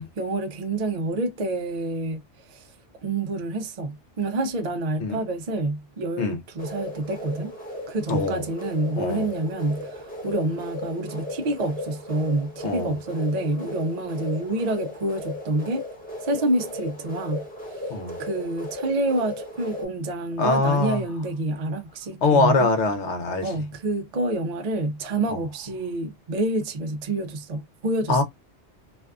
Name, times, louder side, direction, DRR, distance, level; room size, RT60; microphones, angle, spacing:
voice 1, 0.2-2.7 3.0-7.5 7.9-15.8 16.2-17.5 18.2-22.7 23.4-28.2, right 2 dB, 55° right, 0.4 m, -28 dB
sound 1, 6.6-19.8, left 1 dB, 10° left, 0.9 m, -36 dB
voice 2, 8.1-8.4 9.0-9.3 12.6-13.0 17.9-18.2 20.4-21.0 22.2-23.5 25.3-25.4 28.1-28.2, left 3 dB, 70° left, 1.0 m, -23 dB
2.6 x 2.3 x 2.3 m
omnidirectional pair, 1.2 m